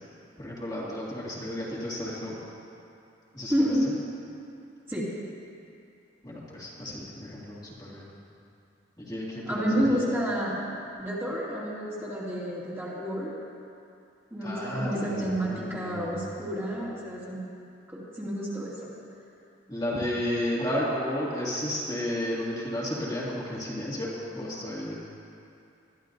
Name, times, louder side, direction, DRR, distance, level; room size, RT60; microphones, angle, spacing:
voice 1, 0.4-2.4 3.3-3.9 6.2-8.1 9.0-10.1 14.4-16.3 19.7-24.9, left 1 dB, 20° left, -7 dB, 2.2 m, -33 dB
voice 2, 3.5-3.8 4.9-5.0 9.5-10.6 11.0-13.3 14.3-17.4 17.9-18.8, equal, 15° right, -8 dB, 2.4 m, -29 dB
21.5 x 13.5 x 2.6 m, 2.6 s
head